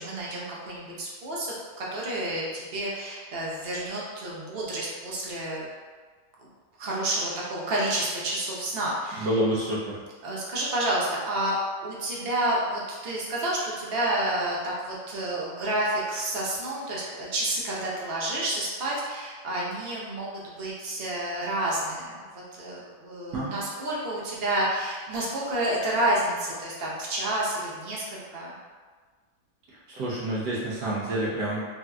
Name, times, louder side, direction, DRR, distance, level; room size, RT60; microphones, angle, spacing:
voice 1, 0.0-5.7 6.8-9.3 10.2-11.6 11.8-28.5, right 1 dB, 60° right, -5 dB, 0.6 m, -29 dB
voice 2, 9.2-10.0 23.3-23.5 29.9-31.6, right 1 dB, 85° right, -7 dB, 1.3 m, -28 dB
3.4 x 2.6 x 2.3 m, 1.5 s
omnidirectional pair, 1.7 m